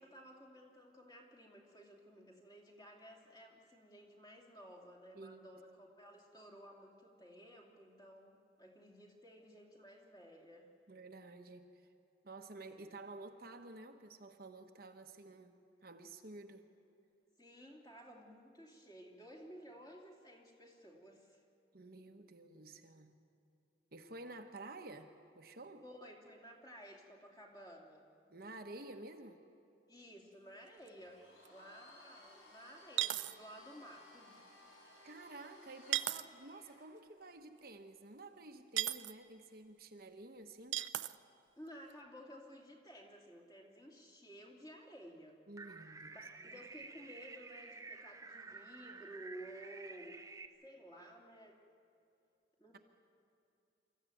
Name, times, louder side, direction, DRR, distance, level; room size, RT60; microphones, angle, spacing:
voice 1, 0.0-10.7 17.4-21.4 25.8-28.1 29.9-31.2 31.5-34.4 41.6-45.4 46.1-50.2 50.6-51.6 52.6-52.8, equal, 20° left, -1 dB, 2.7 m, -55 dB
voice 2, 5.1-5.6 10.9-11.9 12.2-16.7 21.7-23.1 23.9-25.8 28.3-29.4 35.0-40.8 45.5-46.6, right 2 dB, 50° right, 5 dB, 1.0 m, -52 dB
sound 1, 30.9-31.0 31.4-31.5 33.0-33.4 35.9-36.2 38.8-39.1 40.7-41.2, right 14 dB, 80° right, 0.6 m, -35 dB
Domestic sounds home sounds, 31.0-36.9, left 1 dB, 85° left, 5.5 m, -60 dB
sound 2, 45.6-50.5, right 4 dB, 15° right, 0.8 m, -51 dB
25.0 x 14.5 x 9.2 m, 2.6 s
head